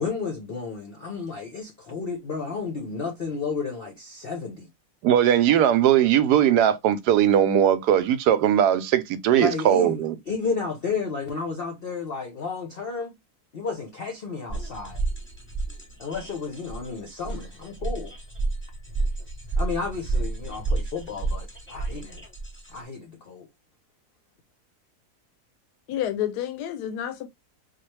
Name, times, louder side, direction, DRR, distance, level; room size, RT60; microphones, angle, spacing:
voice 1, 0.0-4.7 9.3-13.1 13.5-15.0 16.0-18.1 19.6-22.2 22.7-23.5, left 5 dB, 50° left, 0.7 m, -32 dB
voice 2, 5.0-10.2, right 10 dB, 85° right, 1.2 m, -19 dB
sound 1, 14.5-22.8, right 3 dB, 10° left, 0.7 m, -30 dB
voice 3, 25.9-27.3, left 11 dB, 85° left, 1.2 m, -29 dB
4.0 x 2.4 x 3.2 m
omnidirectional pair, 1.7 m